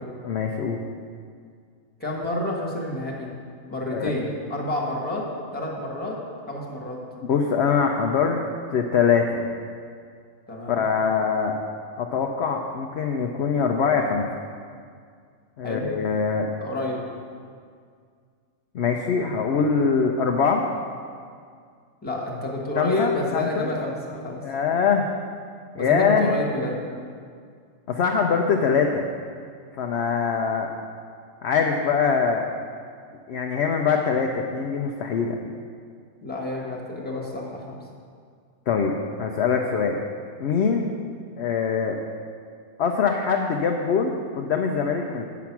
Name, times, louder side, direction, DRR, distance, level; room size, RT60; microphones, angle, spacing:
voice 1, 0.2-0.8 3.9-4.1 7.2-8.4 8.7-9.5 10.7-11.5 12.0-14.3 15.6-16.5 18.7-20.6 22.8-23.7 24.4-25.1 25.7-26.3 27.9-29.0 29.8-30.7 31.4-32.5 33.3-35.4 38.7-40.0 40.4-40.9 41.4-42.0 42.8-45.3, left 6 dB, 60° left, 2 dB, 0.7 m, -23 dB
voice 2, 2.0-3.3 3.7-5.2 5.5-6.2 6.5-7.0 10.5-10.9 15.6-15.9 16.6-17.0 22.0-24.4 25.8-26.8 36.2-37.8, left 1 dB, 5° left, -2 dB, 1.3 m, -29 dB
8.4 x 6.0 x 5.9 m, 2.1 s
omnidirectional pair, 1.5 m